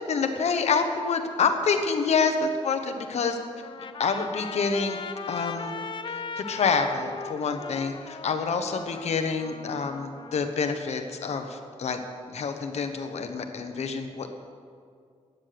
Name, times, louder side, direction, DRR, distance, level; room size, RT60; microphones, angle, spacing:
voice 1, 0.1-3.4 4.0-5.0 5.3-5.7 6.1-12.0 12.3-14.3, left 5 dB, 65° left, 6 dB, 1.1 m, -27 dB
Trumpet, 2.9-10.4, left 5 dB, 40° left, 0.7 m, -39 dB
15.5 x 9.4 x 6.8 m, 2.2 s
wide cardioid pair, 155°, 12 cm